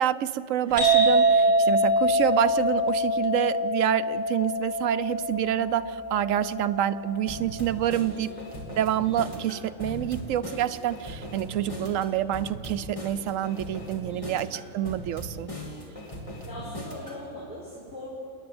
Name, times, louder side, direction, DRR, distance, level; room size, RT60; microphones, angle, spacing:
voice 1, 0.0-8.3 8.8-15.5, right 11 dB, 70° right, 11 dB, 1.0 m, -27 dB
sound 1, 0.8-8.2, right 1 dB, 45° right, 7.6 m, -24 dB
sound 2, 7.3-17.2, equal, 20° left, 2.7 m, -39 dB
voice 2, 8.1-8.4 14.1-14.4 16.4-18.0, left 1 dB, 70° left, -9 dB, 4.6 m, -41 dB
28.0 x 10.0 x 9.6 m, 2.8 s
omnidirectional pair, 1.5 m